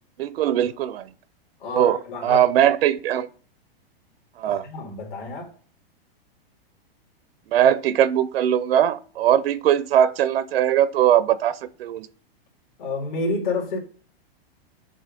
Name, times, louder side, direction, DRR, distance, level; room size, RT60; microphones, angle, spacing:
voice 1, 0.2-1.1 1.7-3.3 4.4-4.7 7.5-12.1, right 10 dB, 75° right, 0.5 m, -20 dB
voice 2, 1.6-2.5 4.5-5.5 12.8-13.8, left 3 dB, 50° left, 2.3 m, -29 dB
7.6 x 2.7 x 5.1 m
supercardioid pair, 165°, 30 cm